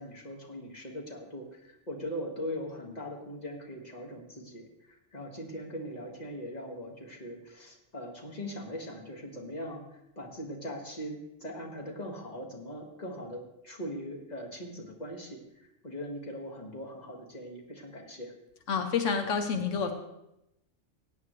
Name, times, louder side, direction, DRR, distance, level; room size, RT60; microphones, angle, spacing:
voice 1, 0.0-9.8 10.2-15.4 15.8-18.3, equal, 35° left, 1 dB, 1.9 m, -40 dB
voice 2, 18.7-19.9, left 6 dB, 85° left, 6 dB, 1.3 m, -28 dB
16.5 x 9.8 x 3.2 m, 0.87 s
omnidirectional pair, 1.2 m